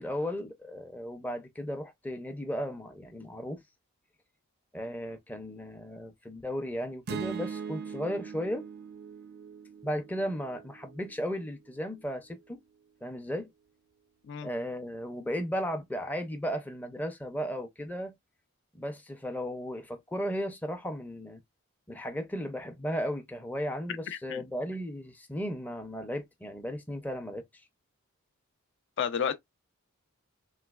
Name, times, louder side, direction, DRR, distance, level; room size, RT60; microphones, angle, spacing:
voice 1, 0.0-3.6 4.7-8.7 9.8-12.6 13.0-13.5 14.4-18.1 18.7-21.4 21.9-27.4, equal, 10° left, 0.5 m, -35 dB
sound 1, 7.1-11.3, right 6 dB, 50° right, 0.4 m, -41 dB
voice 2, 24.1-24.4 29.0-29.4, left 7 dB, 60° left, 0.5 m, -31 dB
3.1 x 3.1 x 2.2 m
head